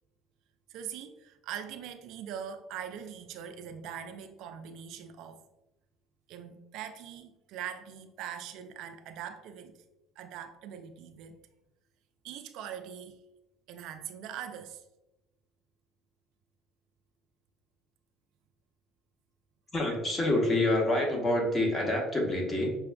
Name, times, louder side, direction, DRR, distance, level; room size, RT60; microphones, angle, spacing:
voice 1, 0.7-5.4 6.3-9.8 10.2-11.5 12.2-13.2 13.7-14.8, right 9 dB, 70° right, 0.3 m, -42 dB
voice 2, 19.7-22.7, left 1 dB, 25° left, 1.1 m, -27 dB
5.8 x 2.4 x 2.3 m
supercardioid pair, 95°, 0 cm